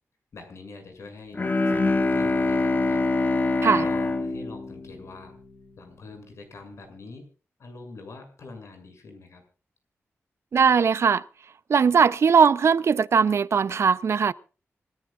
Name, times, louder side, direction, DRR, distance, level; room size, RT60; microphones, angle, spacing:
voice 1, 0.3-3.0 3.6-5.4 5.8-7.3 7.6-9.4, left 3 dB, 70° left, 6.9 m, -44 dB
Bowed string instrument, 1.3-5.6, left 3 dB, 35° left, 1.5 m, -25 dB
voice 2, 10.5-11.2 11.7-14.3, right 6 dB, 60° right, 0.6 m, -19 dB
26.5 x 14.5 x 2.5 m
wide cardioid pair, 125°, 5 cm